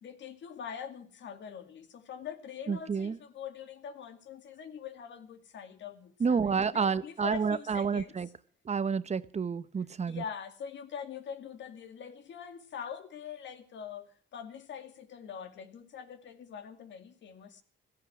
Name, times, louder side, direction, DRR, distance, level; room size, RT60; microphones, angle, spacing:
voice 1, 0.0-8.2 10.1-17.6, left 7 dB, 65° left, 2.4 m, -43 dB
voice 2, 2.7-3.2 6.2-8.3 8.7-10.2, right 6 dB, 35° right, 0.9 m, -29 dB
15.5 x 15.0 x 6.0 m
cardioid pair, 90°, 20 cm